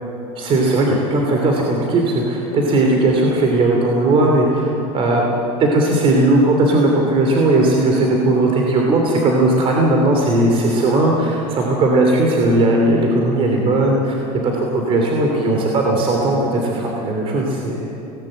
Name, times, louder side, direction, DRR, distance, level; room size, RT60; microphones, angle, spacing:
voice 1, 0.3-5.2 5.6-18.0, right 2 dB, 35° right, 0 dB, 3.0 m, -17 dB
19.0 x 18.5 x 7.9 m, 2.9 s
supercardioid pair, 130°, 15 cm